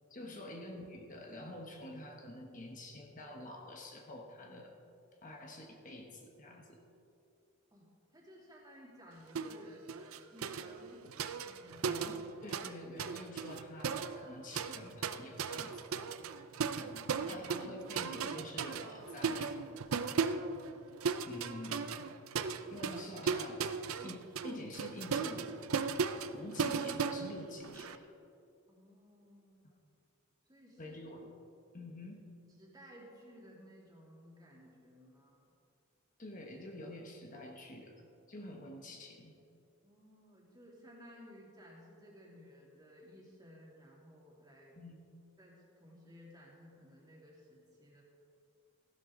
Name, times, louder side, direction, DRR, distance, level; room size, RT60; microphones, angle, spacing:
voice 1, 0.1-4.7 5.2-6.8 11.8-15.8 17.3-19.6 21.2-21.9 22.7-23.6 24.0-25.6 26.3-28.1 29.6-29.7 30.8-31.3 31.7-32.2 36.2-39.3 44.8-45.0, left 1 dB, 40° left, 1 dB, 1.1 m, -47 dB
voice 2, 7.7-11.1 11.4-11.9 16.7-17.5 28.7-29.7 30.5-31.0 32.6-35.4 39.8-44.7 45.4-48.0, equal, 20° right, -4 dB, 2.8 m, -57 dB
sound 1, 9.4-9.6 9.9-12.7 13.0-28.0, right 5 dB, 85° right, 0.6 m, -37 dB
15.5 x 12.0 x 3.8 m, 2.6 s
head